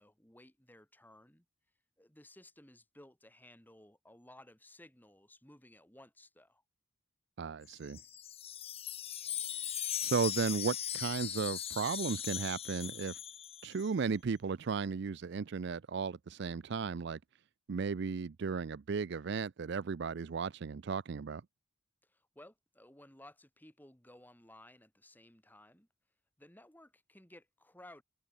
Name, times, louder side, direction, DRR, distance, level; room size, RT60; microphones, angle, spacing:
voice 1, 0.0-1.5 2.0-6.6 22.0-25.9 26.4-28.0, left 1 dB, 10° left, 2.6 m, -58 dB
voice 2, 7.4-8.0 10.0-13.2 13.6-17.2 17.7-21.4, right 5 dB, 60° right, 0.4 m, -35 dB
Wind chime, 7.7-13.9, left 10 dB, 30° left, 0.8 m, -39 dB
head